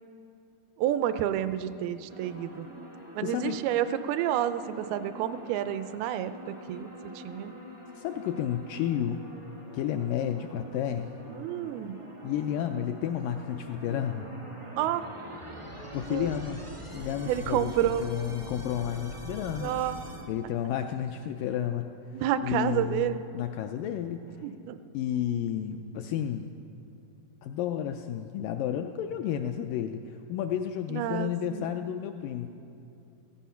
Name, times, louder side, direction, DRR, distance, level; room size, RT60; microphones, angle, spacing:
voice 1, 0.8-2.7 3.2-7.5 11.3-12.0 14.8-15.0 16.1-16.3 17.3-18.1 19.6-20.0 22.1-23.2 24.4-24.8 30.9-31.7, right 11 dB, 85° right, 12 dB, 2.5 m, -30 dB
sound 1, 2.1-20.2, equal, 30° right, 0.5 m, -44 dB
voice 2, 3.2-3.6 8.0-9.2 9.7-11.1 12.2-14.3 15.9-16.7 16.9-19.7 20.3-24.5 24.9-26.5 27.4-32.5, left 10 dB, 85° left, 6 dB, 1.9 m, -31 dB
16.0 x 15.0 x 5.6 m, 2.8 s
omnidirectional pair, 4.4 m